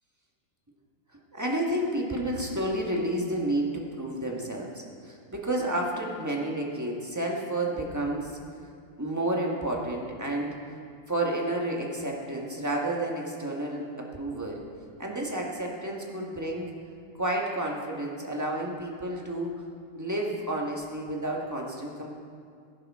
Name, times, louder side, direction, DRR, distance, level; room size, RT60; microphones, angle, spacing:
voice 1, 1.3-8.3 9.0-10.6 11.1-14.6 15.0-16.7 17.2-19.6 19.9-22.1, right 1 dB, 10° right, -1 dB, 1.1 m, -30 dB
17.0 x 10.5 x 3.6 m, 2.3 s
omnidirectional pair, 2.3 m